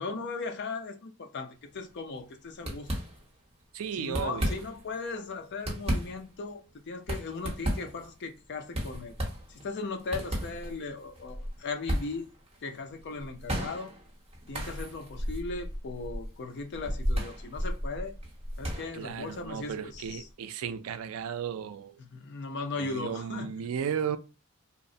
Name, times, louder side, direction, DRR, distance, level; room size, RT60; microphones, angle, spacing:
voice 1, 0.0-2.9 3.9-9.1 9.5-12.3 12.6-13.9 14.5-18.1 18.6-20.2 22.1-23.5, left 3 dB, 55° left, 0.5 m, -37 dB
sound 1, 1.7-2.3 2.6-3.5 4.0-5.0 5.4-20.3, equal, 30° right, 0.9 m, -35 dB
voice 2, 3.7-4.6 18.9-22.0 22.7-24.2, right 7 dB, 70° right, 0.3 m, -34 dB
2.9 x 2.0 x 2.6 m
head